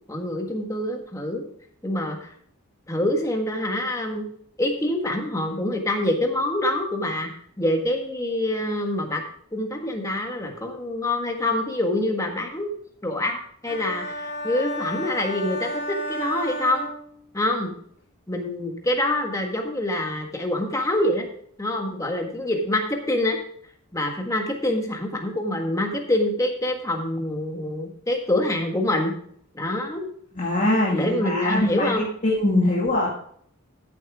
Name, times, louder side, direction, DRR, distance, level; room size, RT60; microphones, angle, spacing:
voice 1, 0.1-1.5 1.8-2.3 2.9-4.3 4.6-7.3 7.6-9.2 9.5-12.7 13.0-16.9 17.3-17.7 18.3-21.3 21.6-23.4 23.9-29.1 29.5-30.1 30.9-32.1, left 1 dB, 15° left, 2 dB, 1.6 m, -25 dB
sound 1, 13.7-17.5, equal, 60° left, 4.7 m, -33 dB
voice 2, 30.4-31.9 32.2-33.1, left 1 dB, 35° left, -4 dB, 2.1 m, -22 dB
14.0 x 7.4 x 3.6 m, 0.63 s
head